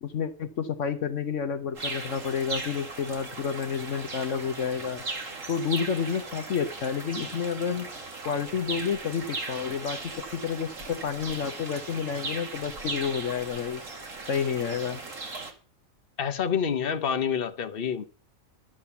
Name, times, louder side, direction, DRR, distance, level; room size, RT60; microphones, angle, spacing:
voice 1, 0.0-5.0 5.5-7.9 8.2-13.8 14.3-15.0, left 7 dB, 65° left, 1.2 m, -30 dB
sound 1, 1.7-15.5, right 3 dB, 65° right, 2.5 m, -38 dB
voice 2, 16.2-18.0, left 7 dB, 45° left, 1.2 m, -27 dB
12.0 x 8.8 x 7.0 m
omnidirectional pair, 1.4 m